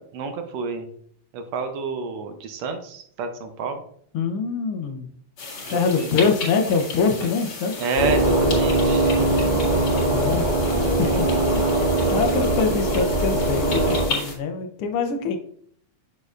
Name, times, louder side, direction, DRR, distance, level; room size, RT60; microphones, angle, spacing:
voice 1, 0.1-0.9 1.3-3.8 5.6-6.1 7.8-9.3 10.7-11.6, right 4 dB, 75° right, 6 dB, 1.7 m, -30 dB
voice 2, 4.1-5.1 5.7-7.7 9.2-10.5 10.8-11.3 11.5-11.6 12.1-15.4, left 5 dB, 85° left, 5 dB, 1.2 m, -24 dB
sound 1, 5.4-14.3, left 4 dB, 50° left, 2.5 m, -34 dB
sound 2, 7.9-14.1, right 2 dB, 15° left, 1.6 m, -21 dB
6.6 x 6.4 x 2.4 m, 0.63 s
omnidirectional pair, 3.4 m